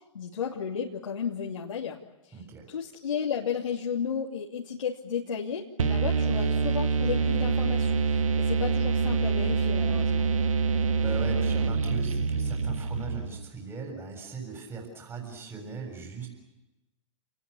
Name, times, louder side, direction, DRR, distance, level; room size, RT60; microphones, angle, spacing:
voice 1, 0.1-2.0 2.2-2.4 2.7-10.3, left 7 dB, 80° left, -2 dB, 2.9 m, -33 dB
voice 2, 2.3-2.7 10.9-16.3, right 4 dB, 15° right, 2 dB, 7.1 m, -39 dB
sound 1, 5.8-13.5, right 5 dB, 85° right, 1.6 m, -26 dB
29.0 x 20.0 x 8.6 m, 0.98 s
hypercardioid pair, 130°, 17 cm